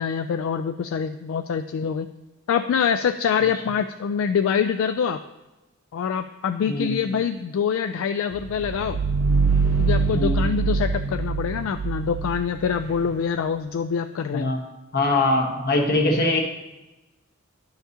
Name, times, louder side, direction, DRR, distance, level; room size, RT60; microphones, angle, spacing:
voice 1, 0.0-2.1 2.5-5.2 5.9-9.0 9.8-14.5, left 7 dB, 70° left, 8 dB, 0.3 m, -25 dB
voice 2, 6.7-7.0 10.1-10.4 14.3-14.6 14.9-16.4, left 2 dB, 50° left, 2 dB, 1.2 m, -22 dB
sound 1, 8.4-13.1, right 4 dB, 85° right, 0.5 m, -24 dB
11.0 x 5.8 x 2.8 m, 1.1 s
head